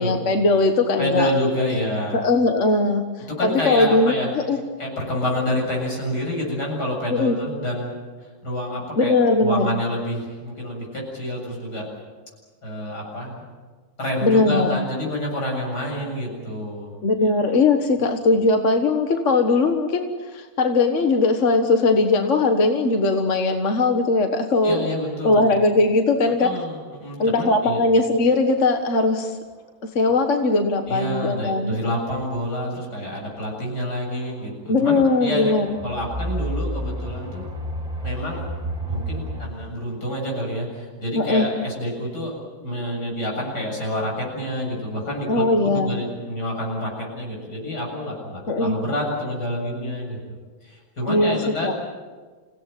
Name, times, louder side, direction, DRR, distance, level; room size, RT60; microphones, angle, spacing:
voice 1, 0.0-1.3 2.1-4.6 7.1-7.4 9.0-9.8 14.2-14.8 17.0-24.9 25.2-26.5 27.2-29.4 30.0-31.8 34.7-35.8 41.2-41.5 45.3-45.9 48.5-48.8 51.1-51.7, left 3 dB, 50° left, 5 dB, 1.7 m, -20 dB
voice 2, 1.0-2.2 3.2-4.3 4.8-8.0 8.4-11.9 12.6-13.4 14.0-16.9 17.2-17.3 24.6-25.6 26.4-27.8 30.9-35.5 35.8-37.4 38.0-38.5 38.9-50.2 50.6-51.7, left 1 dB, 80° left, -1 dB, 8.1 m, -28 dB
sound 1, 30.1-30.2 30.9-31.2 32.2-32.4 34.2-34.5 35.0-39.5, right 1 dB, 25° right, 2.7 m, -31 dB
28.0 x 17.0 x 9.1 m, 1.4 s
omnidirectional pair, 1.7 m